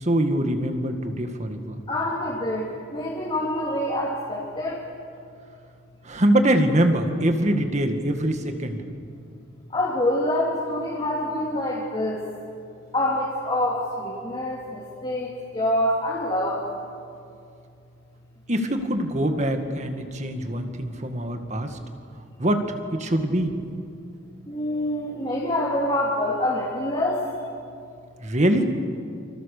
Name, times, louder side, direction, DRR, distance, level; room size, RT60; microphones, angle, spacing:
voice 1, 0.0-1.8 6.0-8.8 18.5-21.8 22.4-23.6 28.2-28.6, right 1 dB, 35° right, 6 dB, 2.0 m, -23 dB
voice 2, 1.9-4.8 9.7-12.2 12.9-16.7 24.5-27.2, left 1 dB, 25° left, -5 dB, 3.2 m, -26 dB
28.5 x 26.5 x 6.8 m, 2.4 s
head